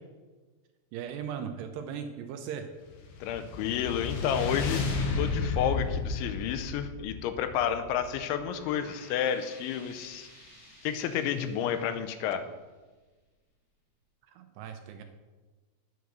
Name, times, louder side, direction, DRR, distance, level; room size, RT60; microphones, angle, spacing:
voice 1, 0.9-2.7 14.3-15.0, right 8 dB, 80° right, 6 dB, 2.6 m, -38 dB
sound 1, 2.9-8.4, left 4 dB, 65° left, 2.4 m, -33 dB
voice 2, 3.2-4.9 5.2-10.3 10.8-12.5, left 9 dB, 85° left, 10 dB, 3.1 m, -30 dB
sound 2, 8.0-13.3, left 1 dB, 25° left, 1.8 m, -54 dB
9.4 x 8.4 x 6.4 m, 1.3 s
omnidirectional pair, 5.3 m